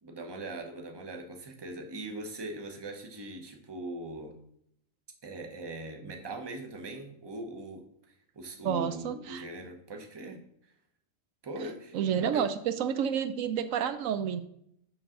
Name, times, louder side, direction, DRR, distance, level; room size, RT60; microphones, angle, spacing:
voice 1, 0.0-4.4 5.2-7.9 8.3-10.4 11.4-12.0 12.3-12.5, right 2 dB, 20° right, 4 dB, 0.9 m, -40 dB
voice 2, 8.6-9.4 11.9-14.4, right 8 dB, 80° right, 11 dB, 1.0 m, -30 dB
6.9 x 6.2 x 3.7 m, 0.72 s
omnidirectional pair, 1.4 m